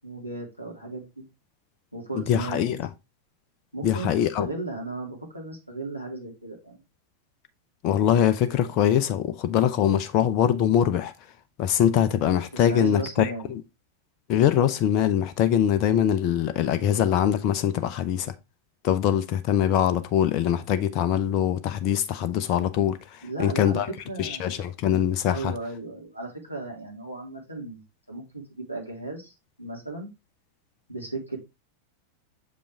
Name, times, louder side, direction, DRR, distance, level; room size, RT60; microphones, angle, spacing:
voice 1, 0.0-1.2 1.9-2.7 3.7-4.1 4.4-6.8 12.5-13.5 23.2-24.6 25.3-27.8 28.1-30.1 30.9-31.4, right 2 dB, 90° right, 2.3 m, -35 dB
voice 2, 2.1-2.9 3.8-4.5 7.8-11.1 11.6-13.6 14.3-18.3 18.8-23.9 24.2-25.5, left 10 dB, 40° left, 0.6 m, -23 dB
6.9 x 5.2 x 3.4 m
figure-of-eight pair, 90°, 0 cm